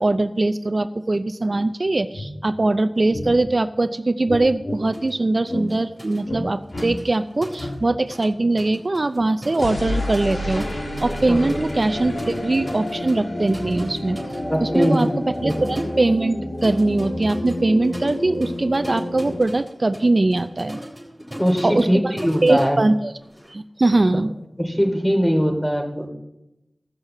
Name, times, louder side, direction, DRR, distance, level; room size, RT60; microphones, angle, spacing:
voice 1, 0.0-10.7 11.0-14.2 14.6-15.1 15.4-20.8 21.6-22.1 22.4-23.1 23.5-24.3, right 2 dB, 50° right, 10 dB, 0.5 m, -21 dB
sound 1, 1.7-1.8 2.1-2.3 3.1-3.3 4.3-4.8 5.5-5.7 6.2-6.4 6.7-6.9 7.6-7.7 9.5-19.4, left 1 dB, 70° left, 2.6 m, -29 dB
sound 2, 4.9-5.2 5.5-8.3 8.6-23.5, equal, ahead, 3.7 m, -39 dB
voice 2, 11.3-11.6 14.5-15.1 15.4-15.5 21.4-22.8 24.6-26.1, equal, 15° left, 2 dB, 3.0 m, -21 dB
15.5 x 6.5 x 7.4 m, 0.92 s
wide cardioid pair, 55°, 0 cm